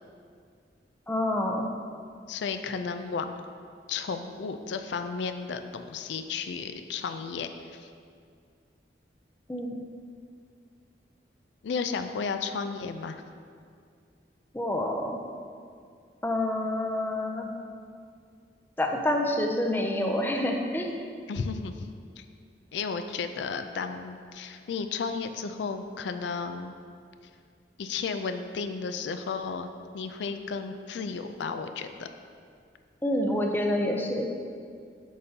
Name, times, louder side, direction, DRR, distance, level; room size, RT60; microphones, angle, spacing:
voice 1, 1.1-1.7 9.5-9.7 14.5-15.2 16.2-17.5 18.8-20.9 33.0-34.3, left 1 dB, 10° left, 2 dB, 0.4 m, -27 dB
voice 2, 2.3-3.3 3.9-7.9 11.6-13.2 21.3-21.7 22.2-22.3 22.7-26.7 27.8-29.7 29.9-32.1, left 5 dB, 85° left, 8 dB, 0.4 m, -33 dB
8.5 x 5.2 x 2.7 m, 2.2 s
head